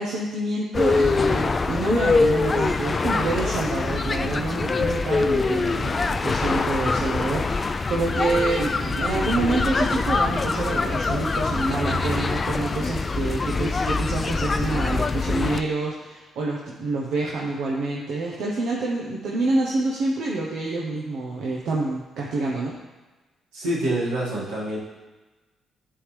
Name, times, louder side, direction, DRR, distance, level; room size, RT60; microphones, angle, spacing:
voice 1, 0.0-22.7, right 2 dB, 70° right, -3 dB, 0.9 m, -27 dB
sound 1, 0.7-15.6, left 4 dB, 40° left, 0.4 m, -24 dB
voice 2, 23.5-24.8, right 1 dB, 90° right, -8 dB, 1.9 m, -26 dB
9.8 x 3.8 x 3.3 m, 1.2 s
hypercardioid pair, 50°, 0 cm